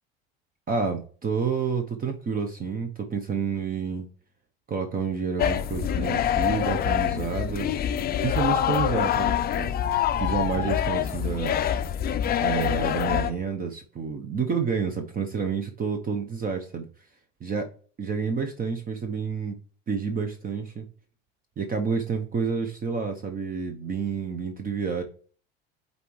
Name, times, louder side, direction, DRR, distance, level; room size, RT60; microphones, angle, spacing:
voice 1, 0.7-4.1 4.7-7.7 8.2-9.7 10.2-11.6 12.4-16.9 17.4-17.7 18.0-19.5 19.9-20.8 21.6-25.0, right 5 dB, 30° right, 6 dB, 0.8 m, -29 dB
sound 1, 5.4-13.3, left 9 dB, 30° left, 0.5 m, -25 dB
8.1 x 4.2 x 3.1 m, 0.43 s
supercardioid pair, 100°, 31 cm